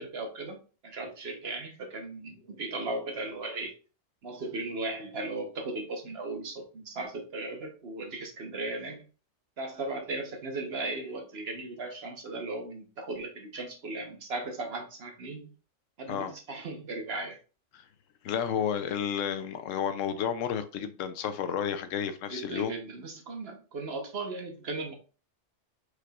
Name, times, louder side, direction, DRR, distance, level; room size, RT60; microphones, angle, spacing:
voice 1, 0.0-3.7 4.2-9.1 9.6-15.5 16.0-17.4 22.3-24.9, right 2 dB, 55° right, 1.1 m, -37 dB
voice 2, 18.2-22.8, left 8 dB, 80° left, 0.9 m, -31 dB
4.8 x 4.7 x 2.3 m
omnidirectional pair, 1.3 m